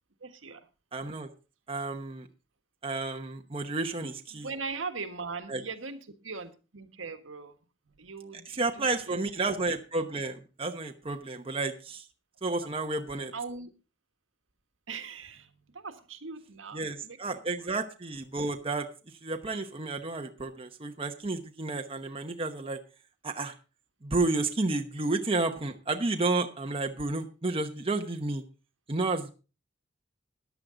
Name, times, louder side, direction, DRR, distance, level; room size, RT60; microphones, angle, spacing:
voice 1, 0.2-0.6 4.0-7.6 7.9-8.5 8.7-9.2 12.6-12.7 13.3-13.7 14.9-17.2 17.6-17.7, right 4 dB, 85° right, 7 dB, 1.6 m, -40 dB
voice 2, 0.9-1.3 1.7-2.3 2.8-4.5 5.5-5.6 8.5-12.0 12.4-13.3 16.7-18.9 19.2-22.8 23.2-23.5 24.0-28.4 28.9-29.3, right 3 dB, 30° right, 4 dB, 1.0 m, -31 dB
14.0 x 10.5 x 3.9 m, 0.33 s
head